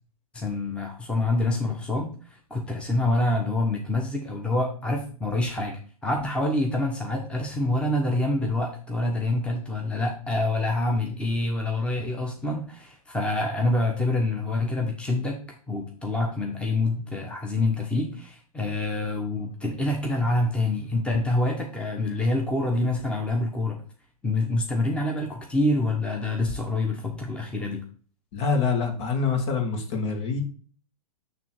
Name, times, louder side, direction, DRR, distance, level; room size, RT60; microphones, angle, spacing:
voice 1, 0.3-15.4 15.7-23.8 24.2-27.8, left 2 dB, 5° left, 0 dB, 1.2 m, -26 dB
voice 2, 28.3-30.4, left 5 dB, 50° left, 3 dB, 2.3 m, -25 dB
9.1 x 3.4 x 4.5 m, 0.43 s
hypercardioid pair, 110°, 19 cm